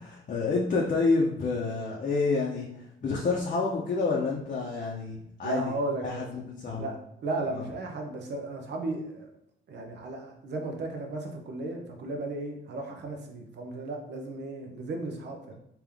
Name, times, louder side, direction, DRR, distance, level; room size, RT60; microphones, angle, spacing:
voice 1, 0.0-5.7 6.0-6.9 7.5-7.6, left 3 dB, 40° left, -3 dB, 0.7 m, -28 dB
voice 2, 5.4-6.2 6.7-7.0 7.2-9.3 9.7-15.5, right 2 dB, 60° right, 3 dB, 0.8 m, -35 dB
3.4 x 2.9 x 3.5 m, 0.77 s
cardioid pair, 90°, 20 cm